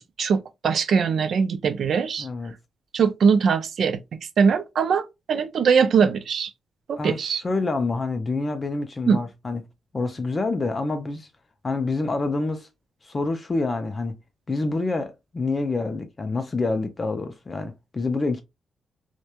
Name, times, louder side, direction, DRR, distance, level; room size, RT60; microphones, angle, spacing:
voice 1, 0.0-2.3 2.9-4.0 4.4-6.5 6.9-7.4 9.1-9.2, right 6 dB, 55° right, 0.4 m, -21 dB
voice 2, 2.2-2.5 7.0-9.6 9.9-11.3 11.6-12.7 13.0-14.2 14.5-18.4, left 3 dB, 25° left, 0.3 m, -27 dB
2.9 x 2.1 x 2.2 m
wide cardioid pair, 160°, 0 cm